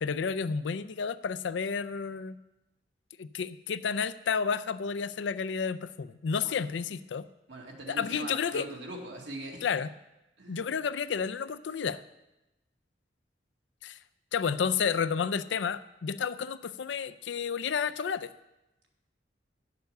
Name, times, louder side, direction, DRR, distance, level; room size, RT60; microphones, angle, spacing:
voice 1, 0.0-2.4 3.2-7.3 7.9-8.7 9.6-9.9 10.5-12.0 13.8-14.0 14.3-18.3, left 6 dB, 80° left, 14 dB, 0.4 m, -31 dB
voice 2, 7.5-9.7 10.4-10.7, right 1 dB, 75° right, 0 dB, 2.0 m, -41 dB
9.2 x 6.9 x 6.5 m, 0.97 s
head